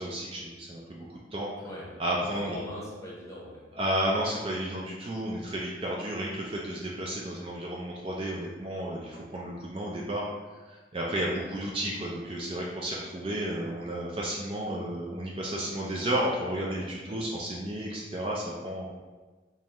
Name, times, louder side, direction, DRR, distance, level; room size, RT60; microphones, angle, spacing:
voice 1, 0.0-1.5 2.0-2.6 3.7-10.3 10.9-18.9, right 1 dB, 30° right, -3 dB, 0.4 m, -32 dB
voice 2, 2.2-3.7 11.2-11.5 17.0-17.3, equal, 15° left, -5 dB, 0.8 m, -41 dB
3.5 x 3.1 x 2.9 m, 1.3 s
head